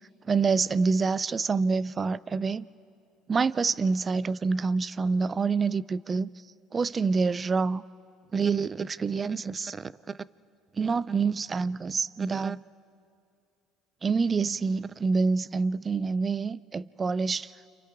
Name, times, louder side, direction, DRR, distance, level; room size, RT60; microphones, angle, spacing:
voice 1, 0.3-2.7 3.3-6.3 6.7-7.8 8.3-10.2 10.7-12.6 14.0-17.5, right 4 dB, 30° right, 0.5 m, -27 dB
30.0 x 27.0 x 3.6 m
supercardioid pair, 85°, 0 cm